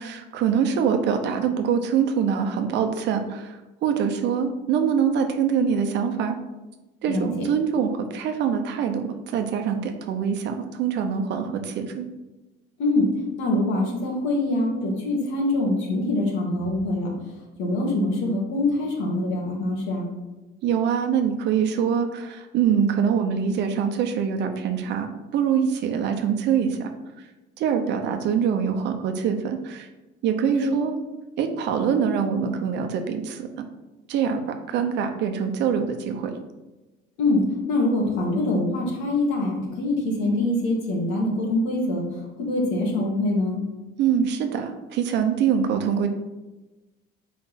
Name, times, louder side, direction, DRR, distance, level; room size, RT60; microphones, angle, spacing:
voice 1, 0.0-6.3 7.0-12.1 20.6-25.1 25.3-26.9 27.6-29.9 30.2-31.0 31.4-33.7 34.1-36.4 44.0-46.1, right 7 dB, 60° right, 6 dB, 0.8 m, -24 dB
voice 2, 13.4-17.1 17.6-20.1 30.6-30.7 37.2-43.6, left 2 dB, 75° left, -2 dB, 2.1 m, -24 dB
4.6 x 4.4 x 5.8 m, 1.1 s
cardioid pair, 140°, 20 cm